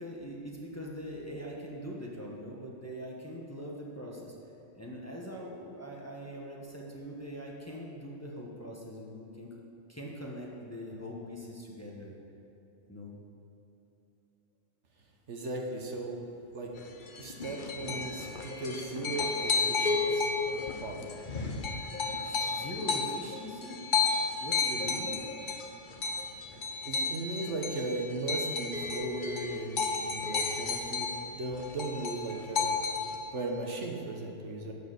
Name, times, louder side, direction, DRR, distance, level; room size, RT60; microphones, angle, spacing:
voice 1, 0.0-4.4 4.7-9.5 9.9-12.2 12.9-13.1 22.2-23.8 24.4-25.2, equal, 10° left, -3 dB, 1.3 m, -42 dB
voice 2, 15.3-16.3 16.5-16.8 17.2-21.1 26.8-32.8 33.3-34.7, right 2 dB, 65° right, 1 dB, 1.4 m, -37 dB
sound 1, 16.8-31.3 31.5-33.2, left 4 dB, 45° left, 1.0 m, -32 dB
12.0 x 4.8 x 8.1 m, 2.9 s
omnidirectional pair, 1.3 m